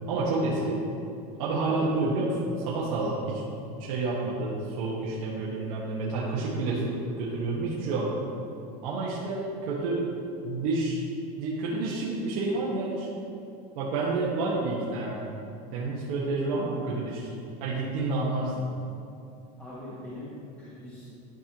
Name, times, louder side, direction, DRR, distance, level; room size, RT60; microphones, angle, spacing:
voice 1, 0.1-0.8 1.4-2.4 2.6-3.4 3.8-8.2 8.8-10.0 10.4-11.0 11.4-13.1 13.7-15.2 15.7-18.7, right 2 dB, 70° right, -7 dB, 1.5 m, -29 dB
voice 2, 19.6-21.1, left 1 dB, 5° left, -11 dB, 1.6 m, -42 dB
12.0 x 5.5 x 3.0 m, 2.6 s
supercardioid pair, 140°, 19 cm